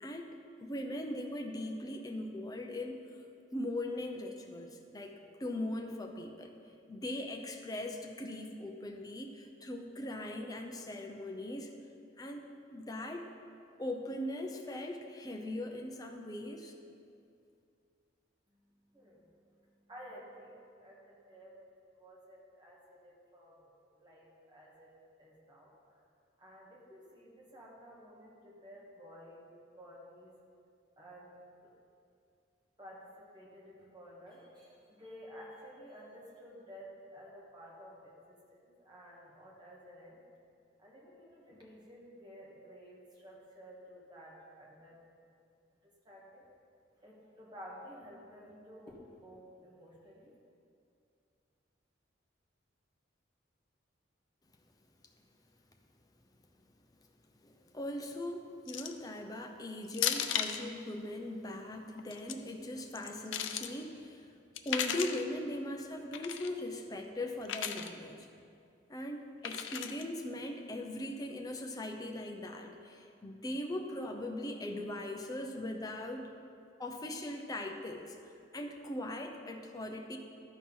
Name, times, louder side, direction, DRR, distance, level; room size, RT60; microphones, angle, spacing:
voice 1, 0.0-3.2 3.5-5.1 5.4-6.5 6.9-11.7 12.2-12.4 12.7-13.3 13.8-16.7 57.4-64.3 64.6-68.3 68.9-76.3 76.8-80.2, left 1 dB, 20° left, 2 dB, 0.7 m, -40 dB
voice 2, 18.9-19.3 19.9-21.6 21.9-23.7 24.0-24.9 25.2-25.7 26.4-30.3 31.0-31.7 32.8-40.2 40.8-45.0 45.8-46.5 47.0-50.4, equal, 25° right, -4 dB, 1.7 m, -53 dB
sound 1, 58.7-59.1 59.9-60.6 62.0-62.3 62.9-63.7 64.6-65.2 66.1-66.5 67.5-67.9 69.4-70.0, left 9 dB, 90° left, 0.5 m, -35 dB
12.5 x 4.5 x 5.5 m, 2.5 s
head